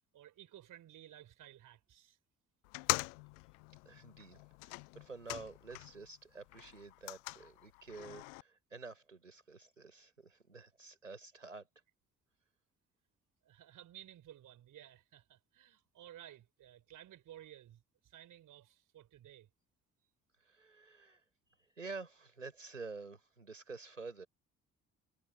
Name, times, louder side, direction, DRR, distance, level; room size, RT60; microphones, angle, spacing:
voice 1, 0.1-2.2 13.4-19.5, right 12 dB, 55° right, 4.9 m, -56 dB
sound 1, 2.6-6.1 6.4-8.4, left 40 dB or more, 70° left, 0.9 m, -42 dB
voice 2, 3.8-11.7 20.4-21.2 21.8-24.3, right 4 dB, 90° right, 6.1 m, -49 dB
figure-of-eight pair, 40°, 37 cm